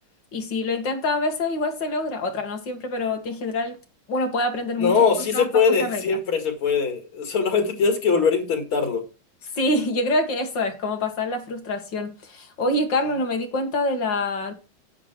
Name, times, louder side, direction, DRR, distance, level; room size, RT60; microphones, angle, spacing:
voice 1, 0.3-3.8 4.1-6.2 9.5-14.5, left 2 dB, 60° left, 2.5 m, -26 dB
voice 2, 4.8-9.0, left 5 dB, 85° left, 3.0 m, -21 dB
9.7 x 7.9 x 4.5 m
omnidirectional pair, 2.2 m